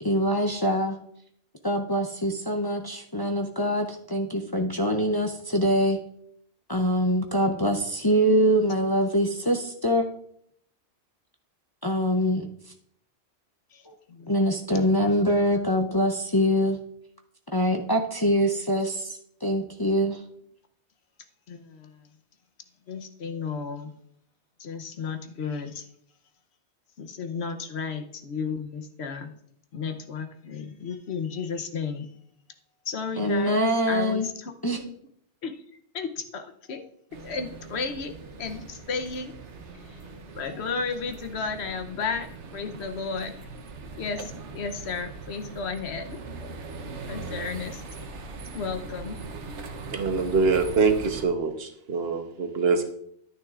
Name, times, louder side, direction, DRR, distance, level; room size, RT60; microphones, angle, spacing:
voice 1, 0.0-1.0 1.6-6.0 6.7-10.0 11.8-12.5 13.9-14.0 14.3-16.8 17.5-20.2 33.2-34.3 34.6-34.8, equal, 25° left, 2 dB, 0.5 m, -24 dB
voice 2, 13.7-14.3 21.5-22.1 22.9-23.9 24.6-25.9 27.0-29.3 29.7-32.1 32.8-34.9 35.4-35.6 35.9-36.9 37.2-39.4 39.8-40.0 40.3-42.3 42.5-43.4 44.0-46.2 47.1-47.8 48.5-49.2, left 5 dB, 70° left, 7 dB, 1.1 m, -33 dB
sound 1, 37.1-51.3, right 3 dB, 85° right, 1.2 m, -41 dB
voice 3, 49.9-52.9, right 4 dB, 65° right, 7 dB, 1.1 m, -24 dB
11.0 x 9.4 x 2.4 m, 0.69 s
omnidirectional pair, 1.1 m